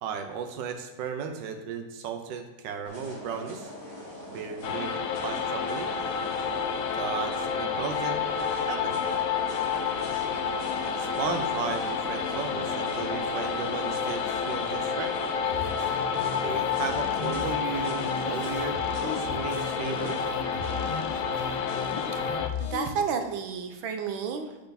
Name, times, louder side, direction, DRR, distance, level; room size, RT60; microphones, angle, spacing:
voice 1, 0.0-3.7 4.3-5.9 7.0-8.2 8.6-9.0 10.8-15.1 16.4-20.2, right 6 dB, 70° right, 5 dB, 1.4 m, -35 dB
sound 1, 2.8-21.8, equal, 45° right, 3.7 m, -44 dB
sound 2, 4.6-22.5, left 6 dB, 65° left, 0.8 m, -29 dB
sound 3, 15.5-22.8, left 7 dB, 85° left, 1.7 m, -38 dB
voice 2, 22.1-24.6, right 6 dB, 90° right, 6 dB, 1.6 m, -32 dB
7.9 x 6.9 x 4.1 m, 1.1 s
omnidirectional pair, 2.1 m